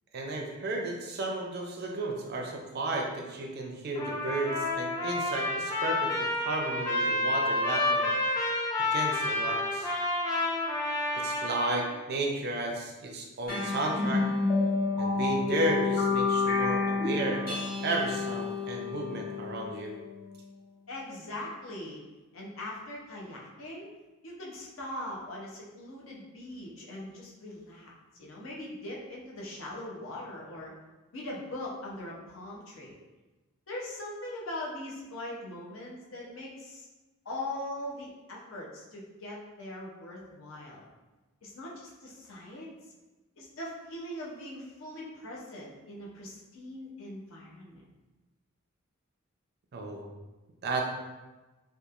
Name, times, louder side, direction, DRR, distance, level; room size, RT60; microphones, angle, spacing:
voice 1, 0.1-8.1 8.9-9.9 11.1-14.3 15.0-19.9 49.7-50.1 50.6-50.8, right 2 dB, 50° right, 1 dB, 0.4 m, -33 dB
Trumpet, 3.9-12.0, left 2 dB, 15° left, 0.4 m, -29 dB
sound 1, 13.5-20.3, left 4 dB, 45° left, 1.1 m, -29 dB
voice 2, 20.9-22.0 22.3-23.9 24.2-27.9 28.2-30.7 31.1-33.0 33.7-36.9 37.2-40.9 41.4-42.7 43.4-47.8, left 1 dB, 65° left, -3 dB, 0.6 m, -41 dB
2.9 x 2.3 x 2.4 m, 1.2 s
head